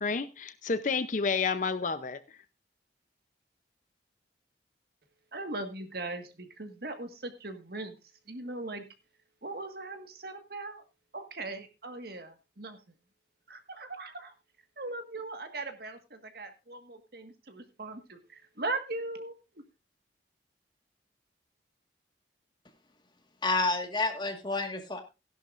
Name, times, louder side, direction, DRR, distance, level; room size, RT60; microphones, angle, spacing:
voice 1, 0.0-2.2, left 4 dB, 45° left, 0.6 m, -30 dB
voice 2, 5.3-8.0 8.3-8.8 9.4-10.8 11.1-12.8 13.5-14.3 14.8-19.3, right 2 dB, 55° right, 1.7 m, -39 dB
voice 3, 23.4-25.0, left 3 dB, 25° left, 1.7 m, -29 dB
16.0 x 11.0 x 2.5 m
head